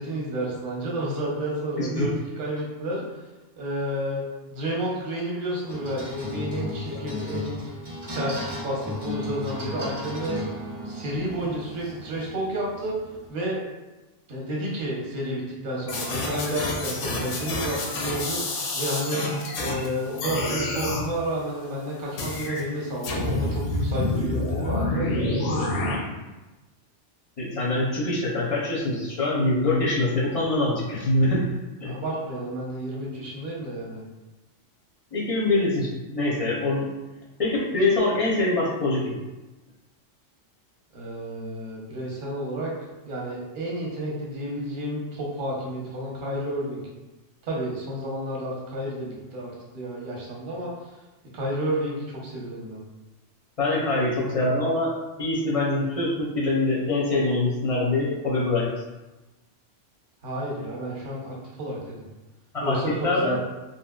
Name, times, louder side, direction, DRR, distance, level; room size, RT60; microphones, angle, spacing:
voice 1, 0.0-3.2 3.6-4.2 4.5-7.5 8.1-10.4 10.8-13.0 13.3-13.6 14.3-19.3 19.6-26.0 31.8-34.0 40.9-42.7 43.0-46.8 47.4-50.7 51.3-52.8 60.2-62.0 62.6-63.4, right 1 dB, 50° right, -3 dB, 0.8 m, -31 dB
sound 1, 5.7-13.3, left 2 dB, 35° right, 0.4 m, -35 dB
sound 2, 15.9-19.9 20.2-21.1 22.2-22.6 23.0-26.0, left 2 dB, 85° left, 0.9 m, -28 dB
voice 2, 27.4-31.4 31.8-31.9 35.1-36.9 37.4-39.1 53.6-54.9 55.2-58.7 62.5-63.3, left 2 dB, 45° left, -5 dB, 0.5 m, -24 dB
2.9 x 2.7 x 2.3 m, 1.1 s
omnidirectional pair, 1.2 m